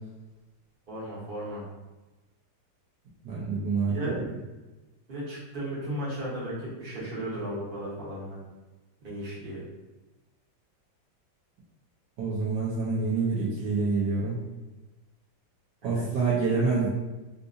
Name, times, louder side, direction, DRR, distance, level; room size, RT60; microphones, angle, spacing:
voice 1, 0.9-1.6 3.9-4.2 5.1-8.4 9.0-9.6 15.8-16.0, right 1 dB, 35° right, -8 dB, 1.0 m, -35 dB
voice 2, 3.2-4.3 12.2-14.4 15.8-16.9, right 4 dB, 70° right, -7 dB, 1.2 m, -27 dB
3.7 x 2.6 x 2.5 m, 1.1 s
omnidirectional pair, 2.1 m